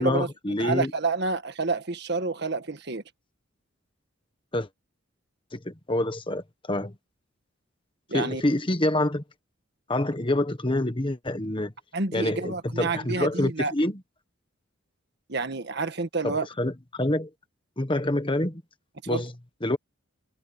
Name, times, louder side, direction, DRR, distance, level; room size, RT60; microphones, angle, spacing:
voice 1, 0.0-0.9 4.5-4.7 5.5-6.9 8.1-9.2 9.9-11.7 12.1-14.0 16.2-17.3 17.8-18.6 19.1-19.3 19.6-19.8, left 1 dB, 25° left, 1.5 m, -27 dB
voice 2, 0.6-3.0 8.1-8.4 11.9-13.7 15.3-16.5 19.1-19.2, right 3 dB, 55° right, 1.6 m, -28 dB
head